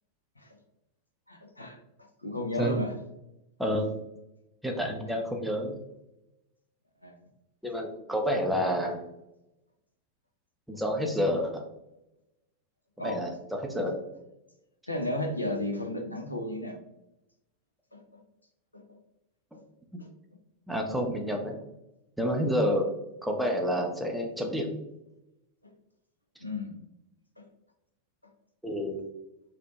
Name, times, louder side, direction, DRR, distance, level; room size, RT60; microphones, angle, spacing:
voice 1, 1.3-1.8 2.2-2.9 7.0-7.2 13.0-13.3 14.9-16.8 17.9-18.2 18.7-18.8 26.4-26.8 27.4-27.5, left 1 dB, 85° left, 3 dB, 0.4 m, -33 dB
voice 2, 3.6-3.9 4.6-5.8 7.6-9.0 10.7-11.6 13.0-14.0 19.9-20.0 20.7-21.6 22.2-22.9 23.2-24.7 28.6-29.0, equal, ahead, 1 dB, 0.4 m, -29 dB
2.7 x 2.0 x 3.0 m, 0.90 s
figure-of-eight pair, 90°, 0 cm